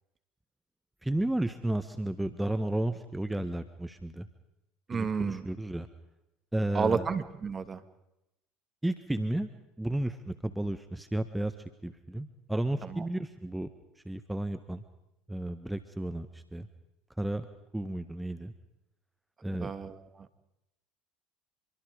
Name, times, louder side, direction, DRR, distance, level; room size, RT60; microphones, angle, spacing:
voice 1, 1.0-4.3 4.9-5.9 6.5-7.1 8.8-9.5 9.8-11.5 11.8-13.7 14.0-14.8 15.3-16.7 17.2-17.5 17.7-18.5 19.4-19.7, right 1 dB, 5° right, 9 dB, 1.4 m, -32 dB
voice 2, 4.9-5.5 6.7-7.8 12.8-13.0 19.6-20.3, right 5 dB, 30° right, 10 dB, 2.2 m, -31 dB
26.0 x 23.5 x 5.2 m, 0.88 s
hypercardioid pair, 70°, 0 cm